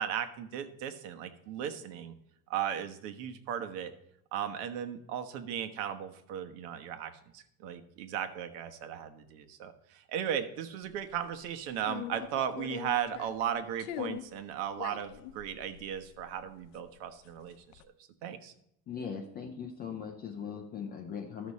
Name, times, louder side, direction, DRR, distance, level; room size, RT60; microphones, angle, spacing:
voice 1, 0.0-2.1 2.5-3.9 4.3-17.8 18.2-18.5, right 9 dB, 70° right, 8 dB, 1.2 m, -36 dB
sound 1, 10.9-11.3 11.8-13.5 13.8-14.3 14.7-17.0 17.2-17.8, left 11 dB, 65° left, 0.7 m, -42 dB
voice 2, 18.9-21.5, left 6 dB, 25° left, 4 dB, 0.3 m, -40 dB
12.5 x 6.2 x 4.1 m, 0.76 s
cardioid pair, 155°, 50 cm